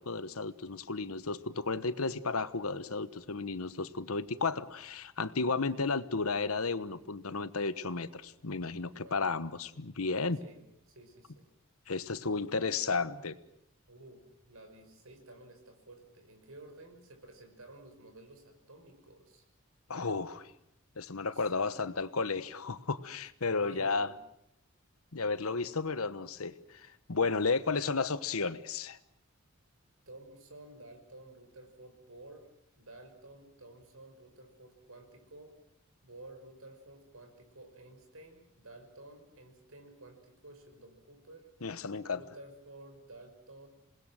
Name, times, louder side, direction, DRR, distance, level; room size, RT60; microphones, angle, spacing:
voice 1, 0.0-10.4 11.9-13.4 19.9-20.5 21.0-24.1 25.1-29.0 41.6-42.2, left 4 dB, 85° left, 14 dB, 1.2 m, -33 dB
voice 2, 8.8-9.3 10.4-11.5 13.9-14.2 14.5-19.5 21.2-22.0 23.6-24.2 30.1-32.5 32.8-35.6 36.0-41.5 42.1-43.7, right 2 dB, 75° right, 5 dB, 5.8 m, -53 dB
27.5 x 20.5 x 7.7 m, 0.79 s
head